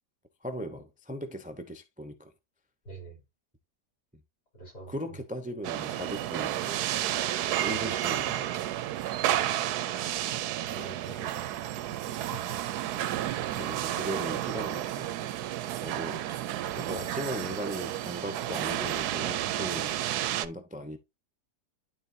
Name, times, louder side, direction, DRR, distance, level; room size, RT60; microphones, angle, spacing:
voice 1, 0.4-2.3 4.9-6.9 7.2-8.6 13.5-15.0 15.8-16.3 16.8-20.0 20.3-21.0, equal, 10° right, 0.4 m, -38 dB
voice 2, 2.9-3.2 4.5-4.9 9.2-9.4 10.6-11.8, right 3 dB, 70° left, 5.4 m, -46 dB
sound 1, 5.6-20.5, right 12 dB, 75° right, 1.1 m, -31 dB
11.5 x 4.2 x 2.7 m
omnidirectional pair, 1.8 m